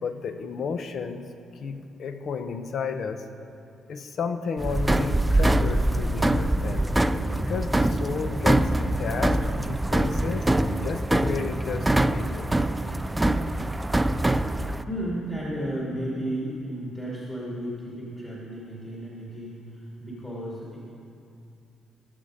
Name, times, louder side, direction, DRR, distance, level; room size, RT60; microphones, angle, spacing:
voice 1, 0.0-1.3 1.5-3.2 3.9-6.9 7.4-10.5 10.8-12.5, left 5 dB, 60° left, 8 dB, 0.9 m, -32 dB
sound 1, 4.6-14.8, right 1 dB, 10° right, 0.4 m, -24 dB
voice 2, 14.9-20.8, right 1 dB, 20° left, -6 dB, 2.7 m, -33 dB
18.0 x 7.5 x 5.0 m, 2.5 s
cardioid pair, 90°, 0 cm